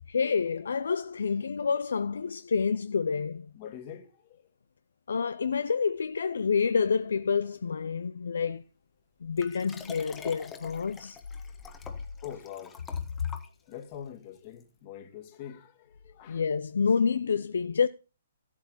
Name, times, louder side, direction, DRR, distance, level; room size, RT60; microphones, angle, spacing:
voice 1, 0.1-3.5 5.1-8.6 9.2-11.2 16.3-17.9, left 5 dB, 75° left, 0.5 m, -28 dB
voice 2, 3.6-4.4 11.3-11.5 12.2-12.8 13.7-16.4, left 9 dB, 40° left, 2.1 m, -44 dB
Liquid, 9.4-13.9 14.6-14.7, left 6 dB, 15° left, 1.3 m, -46 dB
14.0 x 8.4 x 4.1 m
hypercardioid pair, 130°, 0 cm